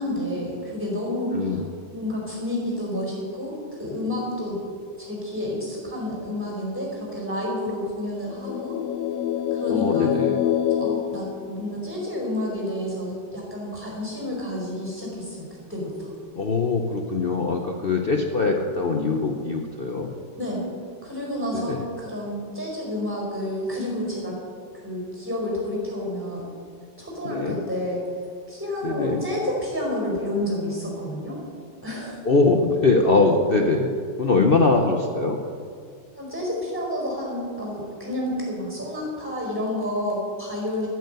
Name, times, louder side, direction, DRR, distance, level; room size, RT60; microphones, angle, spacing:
voice 1, 0.0-1.6 1.9-4.6 5.0-8.8 9.5-10.1 10.8-16.1 20.3-20.7 21.0-24.4 24.8-26.4 27.0-28.0 28.5-31.4 31.8-32.2 36.2-40.9, left 1 dB, 5° right, -2 dB, 4.7 m, -30 dB
voice 2, 1.3-1.6 9.7-10.4 16.3-20.1 21.5-21.8 27.2-27.6 28.8-29.2 32.2-33.9 34.2-35.4, left 3 dB, 45° left, 3 dB, 0.8 m, -22 dB
sound 1, 8.3-12.1, left 10 dB, 75° left, 0.7 m, -26 dB
12.5 x 9.5 x 8.2 m, 2.2 s
omnidirectional pair, 1.9 m